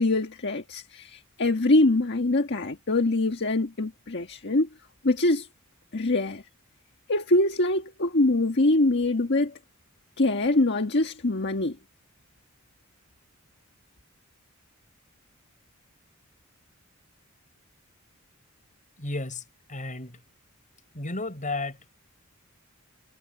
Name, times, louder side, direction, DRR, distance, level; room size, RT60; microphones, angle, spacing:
voice 1, 0.0-4.7 5.0-5.5 5.9-6.4 7.1-9.5 10.2-11.7, left 2 dB, 55° left, 1.5 m, -24 dB
voice 2, 19.0-19.4 19.7-20.2 20.9-21.8, left 2 dB, 40° left, 5.1 m, -32 dB
head